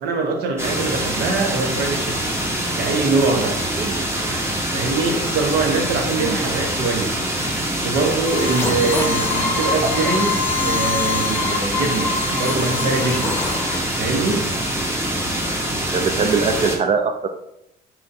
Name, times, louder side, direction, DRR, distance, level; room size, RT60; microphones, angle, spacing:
voice 1, 0.0-2.2 2.8-3.6 4.7-7.1 7.8-13.4 14.0-14.6, right 3 dB, 75° right, 0.8 m, -23 dB
sound 1, 0.6-16.8, right 1 dB, 15° right, 0.9 m, -24 dB
sound 2, 8.3-13.8, left 4 dB, 15° left, 0.8 m, -25 dB
voice 2, 15.9-17.3, right 5 dB, 40° right, 0.4 m, -21 dB
4.4 x 3.9 x 2.6 m
cardioid pair, 110°, 17 cm